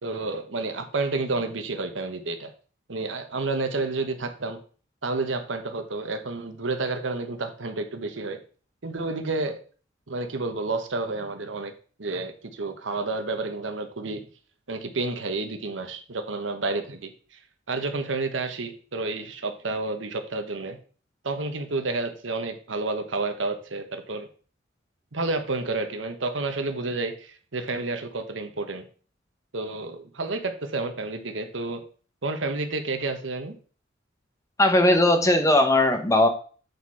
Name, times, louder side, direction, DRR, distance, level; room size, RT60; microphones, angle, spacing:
voice 1, 0.0-2.5 2.9-4.6 5.0-8.4 8.8-9.6 10.1-11.7 12.0-14.3 14.7-17.1 17.7-20.8 21.2-24.3 25.1-28.8 29.5-31.8 32.2-33.5, right 3 dB, 85° right, 7 dB, 1.1 m, -30 dB
voice 2, 34.6-36.3, left 1 dB, 15° left, 6 dB, 1.0 m, -19 dB
8.1 x 4.3 x 4.8 m, 0.40 s
head